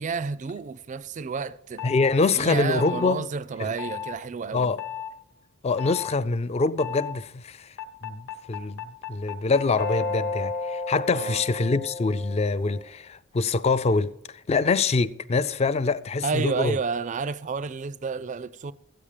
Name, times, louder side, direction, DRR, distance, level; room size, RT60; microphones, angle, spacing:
voice 1, 0.0-1.9 2.4-4.7 11.1-11.4 16.2-18.7, right 5 dB, 35° right, 0.4 m, -30 dB
sound 1, 1.8-2.1 2.8-3.2 3.8-4.2 4.8-5.1 5.8-6.1 6.8-7.2 7.8-12.9, left 5 dB, 55° left, 1.0 m, -33 dB
voice 2, 1.8-3.2 3.6-3.7 4.5-4.8 5.6-7.7 8.0-14.1 14.5-16.8, left 3 dB, 30° left, 0.4 m, -25 dB
13.5 x 8.7 x 5.0 m
head